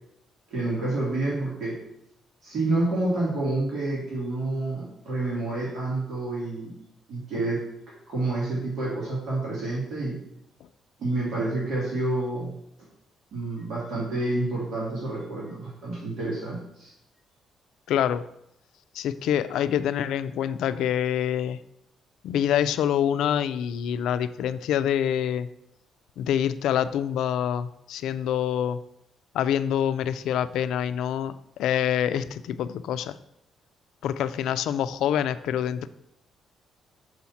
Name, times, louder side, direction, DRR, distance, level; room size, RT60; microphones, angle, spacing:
voice 1, 0.5-1.8 2.4-6.7 7.1-7.6 8.1-10.2 11.0-12.5 13.3-16.9, right 2 dB, 55° right, -5 dB, 2.4 m, -28 dB
voice 2, 17.9-18.2 18.9-21.6 22.2-25.5 26.2-28.8 29.3-33.2 34.0-35.9, left 9 dB, 85° left, 13 dB, 0.3 m, -26 dB
6.4 x 4.2 x 5.8 m, 0.79 s
cardioid pair, 180°, 0 cm